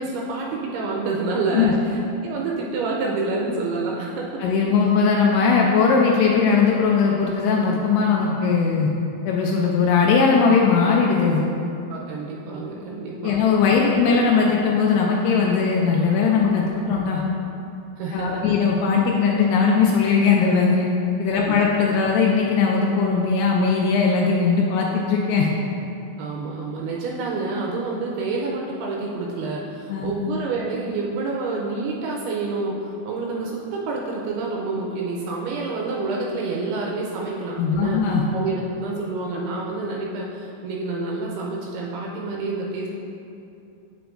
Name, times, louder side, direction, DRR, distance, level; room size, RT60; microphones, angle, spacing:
voice 1, 0.0-4.4 11.9-13.3 13.7-14.2 16.9-17.1 18.0-18.4 21.4-21.7 26.2-38.0 38.3-42.9, right 3 dB, 80° right, -2 dB, 2.5 m, -28 dB
voice 2, 4.4-8.9 9.3-11.5 13.2-17.2 18.1-20.9 21.2-25.5 29.9-30.1 37.6-38.2, left 5 dB, 85° left, -2 dB, 2.5 m, -19 dB
7.9 x 6.9 x 2.5 m, 2.7 s
omnidirectional pair, 4.8 m